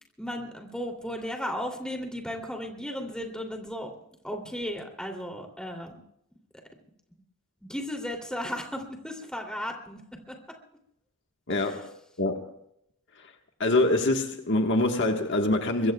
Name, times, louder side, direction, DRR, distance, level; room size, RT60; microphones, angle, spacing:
voice 1, 0.2-3.9 4.2-6.0 7.1-7.2 7.6-10.0 10.3-10.4 11.6-11.8, equal, 5° left, 2.8 m, -35 dB
voice 2, 11.5-12.5 13.6-15.9, left 2 dB, 55° left, 1.4 m, -25 dB
24.5 x 22.0 x 2.3 m
head